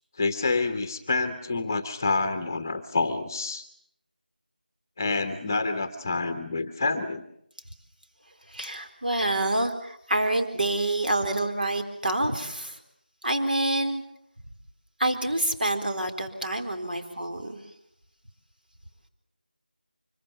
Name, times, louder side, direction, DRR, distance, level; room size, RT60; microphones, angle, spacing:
voice 1, 0.2-3.6 5.0-7.2, left 3 dB, 20° left, 10 dB, 1.0 m, -27 dB
voice 2, 8.5-12.8 13.2-14.0 15.0-17.6, right 1 dB, 65° right, 5 dB, 4.3 m, -27 dB
25.0 x 23.5 x 7.2 m, 0.71 s
figure-of-eight pair, 170°, 5 cm